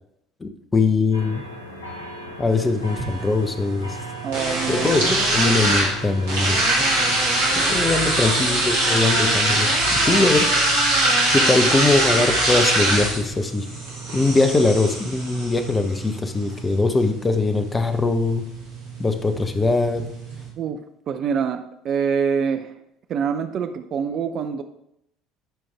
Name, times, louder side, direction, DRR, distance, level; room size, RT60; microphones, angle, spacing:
voice 1, 0.4-1.4 2.4-4.0 4.7-6.6 7.5-10.5 11.3-13.7 14.1-18.4 19.0-20.0, left 3 dB, 20° left, 8 dB, 1.0 m, -21 dB
sound 1, 1.1-10.4, right 1 dB, 85° left, 1.2 m, -37 dB
sound 2, 2.5-20.5, right 1 dB, 70° right, 2.8 m, -23 dB
voice 2, 4.2-5.2 20.6-22.8 23.1-24.6, right 6 dB, 45° right, 8 dB, 0.5 m, -25 dB
12.5 x 5.3 x 3.4 m, 0.78 s
figure-of-eight pair, 60°, 0 cm